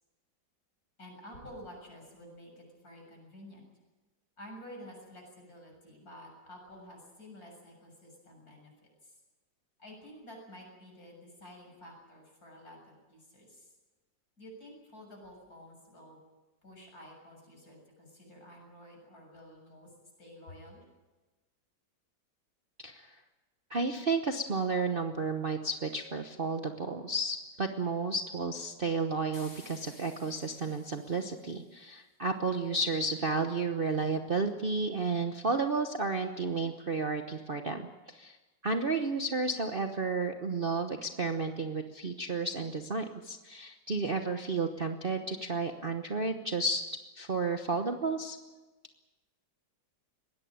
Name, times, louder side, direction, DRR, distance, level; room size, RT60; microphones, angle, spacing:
voice 1, 1.0-3.6 4.4-8.7 9.0-9.2 9.8-13.7 14.4-16.2 16.6-19.9 20.2-20.8, equal, 50° left, 1 dB, 7.7 m, -51 dB
voice 2, 22.8-23.1 23.7-38.4 38.6-46.8 47.2-48.4, right 3 dB, 35° right, 5 dB, 1.0 m, -32 dB
sound 1, 29.3-31.7, left 2 dB, 30° left, 3.0 m, -55 dB
21.5 x 17.5 x 8.9 m, 1.2 s
omnidirectional pair, 2.0 m